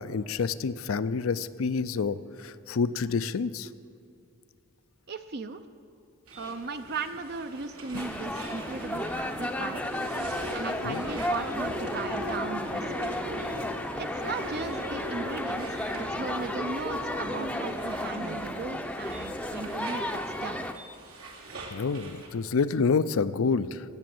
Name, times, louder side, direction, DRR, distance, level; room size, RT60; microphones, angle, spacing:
voice 1, 0.0-3.7 10.8-11.0 21.7-23.8, left 5 dB, 70° left, 15 dB, 0.5 m, -28 dB
voice 2, 5.1-5.6 6.4-9.8 10.5-13.1 13.9-20.7, right 4 dB, 50° right, 8 dB, 0.6 m, -37 dB
sound 1, 6.3-22.3, right 1 dB, 85° right, 2.6 m, -41 dB
sound 2, 7.9-20.7, left 1 dB, 5° left, 0.6 m, -33 dB
18.0 x 7.5 x 7.8 m, 2.6 s
head